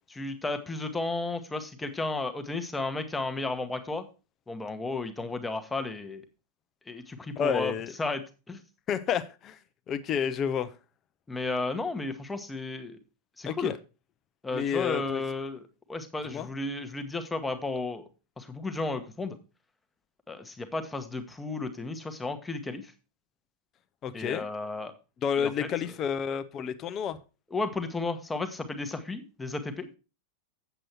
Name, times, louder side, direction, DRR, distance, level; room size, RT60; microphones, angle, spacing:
voice 1, 0.1-4.1 4.5-6.2 6.9-7.7 8.0-8.6 11.3-13.0 13.4-13.7 14.4-15.6 15.9-18.1 18.4-19.4 20.3-22.9 24.1-24.9 25.4-25.7 27.5-29.9, left 3 dB, 10° left, 1.1 m, -33 dB
voice 2, 7.4-7.9 8.9-9.6 9.9-10.7 13.5-13.8 14.5-15.2 16.3-16.5 24.0-24.5 25.2-27.2, left 8 dB, 30° left, 0.7 m, -30 dB
8.0 x 7.6 x 4.4 m
figure-of-eight pair, 90°, 0 cm